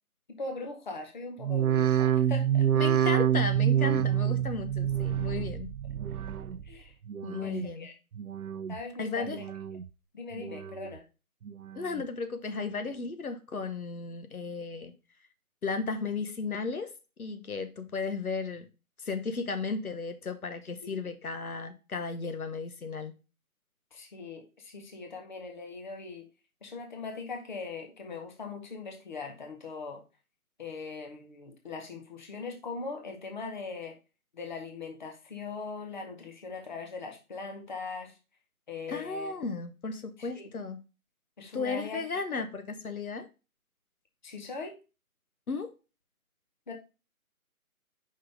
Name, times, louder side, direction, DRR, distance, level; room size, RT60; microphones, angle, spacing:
voice 1, 0.3-2.7 6.6-6.9 7.4-7.9 8.7-9.4 10.1-11.0 20.8-21.1 23.9-26.3 26.6-30.0 30.6-34.0 34.3-38.2 38.7-39.3 40.2-40.5 41.4-42.0 42.3-42.4 44.2-44.8 46.7-46.8, left 4 dB, 30° left, 3 dB, 0.9 m, -40 dB
sound 1, 1.4-6.7 7.1-7.7 8.1-8.8 9.2-9.9 10.3-11.0 11.5-12.0 12.6-12.7, right 10 dB, 75° right, 0.6 m, -28 dB
voice 2, 2.7-5.7 7.2-7.9 9.0-9.4 11.7-14.9 15.6-16.9 17.2-18.7 19.0-23.1 38.9-40.8 41.5-43.3 45.5-45.7, left 4 dB, 75° left, 8 dB, 1.1 m, -34 dB
5.5 x 3.8 x 4.9 m, 0.30 s
figure-of-eight pair, 165°, 44 cm